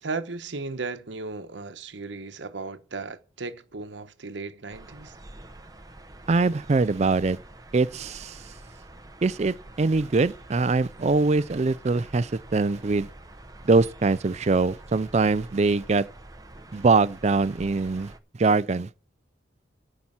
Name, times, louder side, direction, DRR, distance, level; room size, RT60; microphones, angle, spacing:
voice 1, 0.0-5.2, right 3 dB, 75° right, 1.0 m, -35 dB
sound 1, 4.7-18.2, right 1 dB, 20° right, 0.8 m, -47 dB
voice 2, 6.3-7.4 7.7-8.5 9.2-13.1 13.6-16.1 16.7-18.1 18.4-18.9, right 3 dB, 35° right, 0.4 m, -23 dB
9.6 x 5.9 x 7.3 m
head